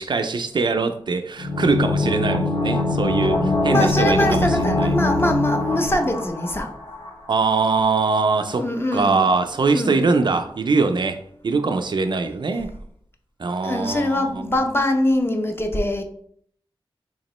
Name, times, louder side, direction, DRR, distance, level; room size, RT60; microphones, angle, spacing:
voice 1, 0.0-5.0 7.3-12.7 13.4-14.5, right 4 dB, 55° right, 8 dB, 0.3 m, -22 dB
sound 1, 1.4-7.1 7.3-7.4, left 2 dB, 60° left, 0.7 m, -22 dB
voice 2, 3.7-6.7 8.6-9.3 9.7-10.1 13.6-16.0, left 1 dB, 25° left, 5 dB, 0.5 m, -23 dB
3.6 x 2.9 x 3.0 m, 0.64 s
wide cardioid pair, 65°, 9 cm